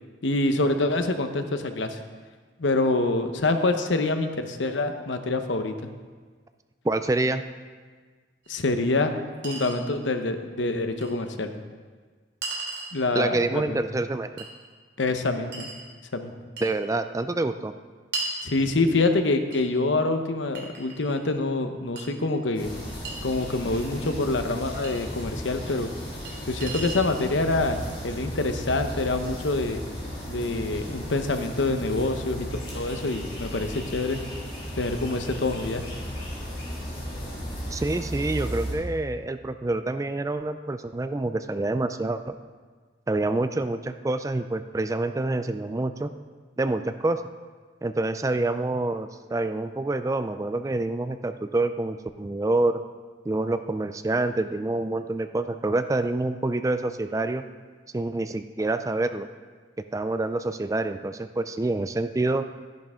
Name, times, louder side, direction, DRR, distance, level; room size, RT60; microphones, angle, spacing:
voice 1, 0.2-2.0 2.6-5.7 8.5-9.1 9.4-11.5 12.9-13.9 15.0-15.7 16.1-16.3 18.4-22.7 23.2-25.9 26.5-29.8 30.3-32.5 32.7-34.2 34.8-35.8, left 2 dB, 85° left, 7 dB, 0.9 m, -26 dB
voice 2, 6.8-7.4 13.1-14.5 16.6-17.7 37.7-42.3 43.1-46.1 46.6-47.2 47.8-52.8 53.3-57.4 57.9-59.3 59.9-62.4, right 2 dB, 15° right, 10 dB, 0.3 m, -27 dB
Chink clink, 8.4-8.5 9.4-9.8 11.0-11.1 12.4-12.9 14.4-14.5 15.5-15.8 16.6-16.7 18.1-18.4 19.5-19.6 20.5-21.3 22.0-22.1 23.0-23.2 24.8-24.9 26.2-26.3 26.6-27.1, right 3 dB, 65° right, 3.0 m, -34 dB
sound 1, 22.5-38.7, equal, 30° left, 3.6 m, -35 dB
13.0 x 10.5 x 3.7 m, 1.5 s
head